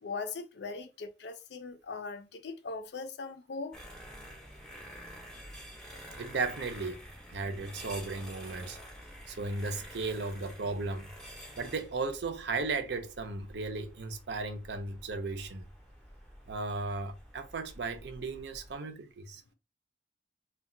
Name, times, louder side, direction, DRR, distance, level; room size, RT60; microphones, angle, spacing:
voice 1, 0.0-3.7, left 4 dB, 65° left, 0.4 m, -40 dB
sound 1, 3.7-18.8, equal, 5° left, 0.6 m, -49 dB
voice 2, 6.2-7.0 7.3-8.8 9.3-11.1 11.6-15.6 16.5-19.4, right 3 dB, 65° right, 0.5 m, -35 dB
2.3 x 2.2 x 3.6 m
head